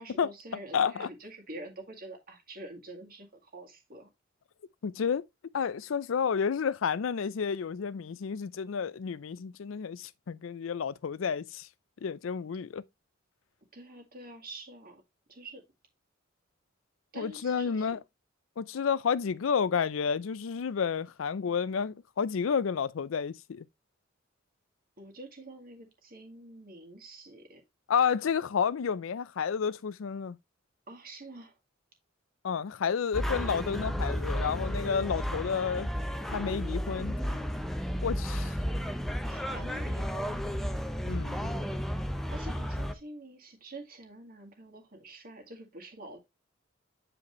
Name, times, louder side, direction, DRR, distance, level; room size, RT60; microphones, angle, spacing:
voice 1, 0.0-4.1 13.7-15.0 15.3-15.6 17.1-18.0 25.0-27.6 30.9-31.5 38.3-38.5 39.3-40.5 42.3-46.2, right 2 dB, 50° right, 1.9 m, -46 dB
voice 2, 0.7-1.1 4.8-5.2 5.5-11.7 12.0-12.8 17.2-18.0 18.6-23.7 27.9-30.4 32.4-35.9 36.3-37.1 38.0-38.5 41.0-41.5, left 6 dB, 85° left, 0.4 m, -30 dB
sound 1, 33.1-42.9, equal, ahead, 0.6 m, -33 dB
7.8 x 4.9 x 3.1 m
head